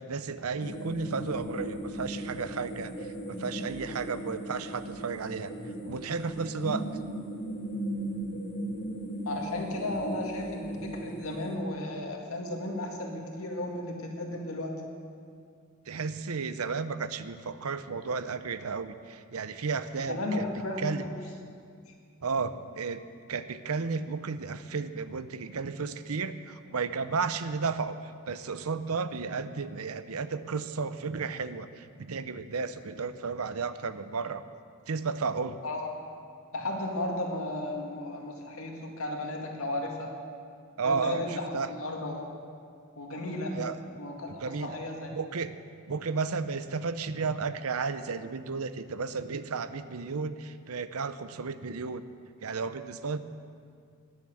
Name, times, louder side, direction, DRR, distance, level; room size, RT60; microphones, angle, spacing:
voice 1, 0.0-2.9 3.3-5.5 5.8-6.8 15.9-20.5 20.8-21.0 22.2-23.0 23.3-28.0 28.3-34.4 34.9-35.6 40.8-41.7 43.5-43.8 44.4-44.8 45.1-45.6 45.9-52.0 52.4-53.2, right 4 dB, 90° right, 12 dB, 0.7 m, -33 dB
sound 1, 0.6-11.6, right 1 dB, 55° left, 2.0 m, -37 dB
voice 2, 9.3-14.8 20.0-21.2 35.6-35.9 36.5-40.1 40.8-42.2 43.0-43.6 44.0-45.1, left 1 dB, 75° left, 1 dB, 2.1 m, -34 dB
21.0 x 7.3 x 7.8 m, 2.3 s
head